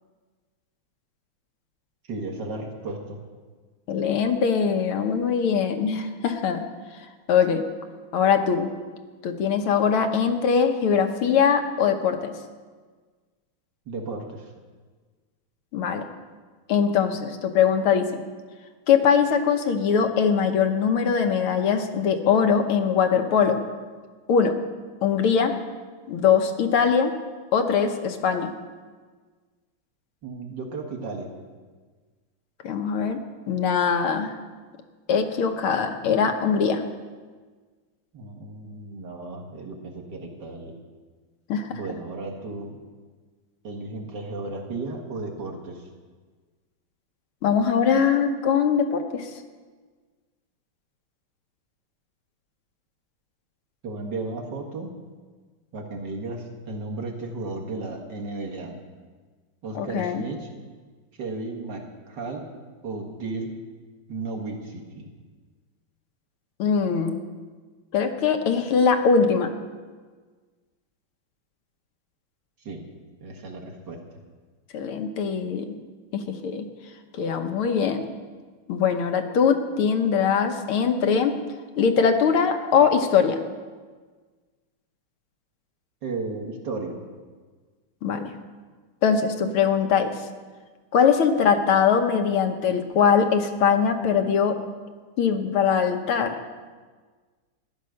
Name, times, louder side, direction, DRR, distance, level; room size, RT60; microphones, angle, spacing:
voice 1, 2.0-3.2 13.9-14.5 30.2-31.3 38.1-40.7 41.7-42.8 43.6-45.9 53.8-55.0 55.7-58.8 59.6-60.5 61.2-62.5 62.8-63.5 64.1-65.1 72.6-72.9 73.2-74.0 86.0-87.0, right 3 dB, 55° right, 1 dB, 2.3 m, -34 dB
voice 2, 3.9-6.7 7.3-7.6 8.1-8.7 9.2-12.3 15.7-16.0 16.7-18.2 18.9-23.6 24.3-24.5 25.0-25.5 26.1-27.1 27.5-28.5 32.6-33.2 33.5-34.4 35.1-36.8 41.5-41.8 47.4-49.3 59.8-60.2 66.6-67.2 67.9-69.5 74.7-75.8 76.1-76.7 77.1-78.1 78.7-81.3 81.8-83.4 88.0-88.3 89.0-90.3 90.9-94.6 95.2-96.4, left 6 dB, 85° left, 6 dB, 1.9 m, -22 dB
14.0 x 10.5 x 6.5 m, 1.5 s
omnidirectional pair, 2.3 m